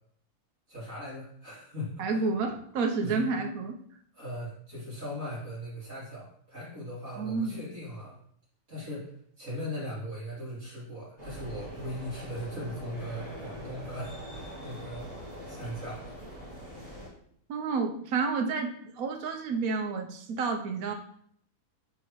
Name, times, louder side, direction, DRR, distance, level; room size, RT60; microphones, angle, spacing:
voice 1, 0.7-2.3 3.0-3.3 4.1-8.2 8.7-16.0, equal, 50° right, -12 dB, 3.2 m, -39 dB
voice 2, 2.0-3.8 7.2-7.6 17.5-20.9, right 4 dB, 65° right, 4 dB, 1.2 m, -30 dB
sound 1, 11.2-17.1, equal, 25° right, 2.9 m, -43 dB
8.1 x 3.8 x 3.1 m, 0.65 s
omnidirectional pair, 1.7 m